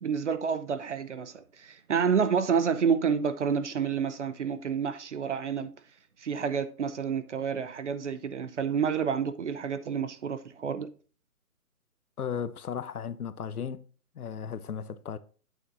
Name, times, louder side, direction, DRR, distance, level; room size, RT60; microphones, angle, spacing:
voice 1, 0.0-5.7 6.2-10.9, right 6 dB, 50° right, 0.8 m, -29 dB
voice 2, 12.2-13.8 14.1-15.2, left 7 dB, 75° left, 0.9 m, -35 dB
8.3 x 7.2 x 2.6 m
hypercardioid pair, 160°, 46 cm